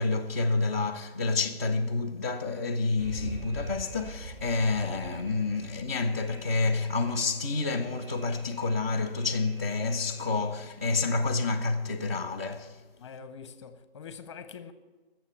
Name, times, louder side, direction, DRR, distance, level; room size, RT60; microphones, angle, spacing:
voice 1, 0.0-12.8, left 3 dB, 15° right, 0.3 m, -29 dB
Alarm, 3.0-10.7, right 2 dB, 55° right, 2.5 m, -45 dB
voice 2, 13.0-14.7, left 6 dB, 30° left, 0.7 m, -44 dB
14.5 x 7.2 x 8.5 m
hypercardioid pair, 160°, 30 cm